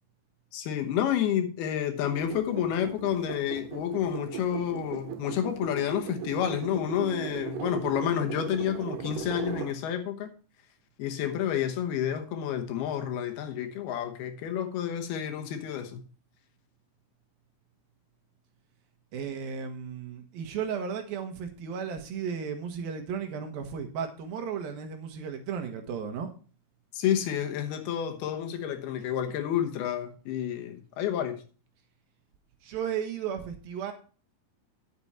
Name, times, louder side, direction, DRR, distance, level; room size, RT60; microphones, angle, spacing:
voice 1, 0.5-10.3 11.0-16.0 26.9-31.4, left 10 dB, 80° left, 3.1 m, -30 dB
sound 1, 2.1-9.7, right 10 dB, 90° right, 3.2 m, -38 dB
voice 2, 19.1-26.3 29.0-29.1 32.6-33.9, right 7 dB, 70° right, 3.0 m, -34 dB
9.9 x 8.0 x 4.2 m
omnidirectional pair, 4.5 m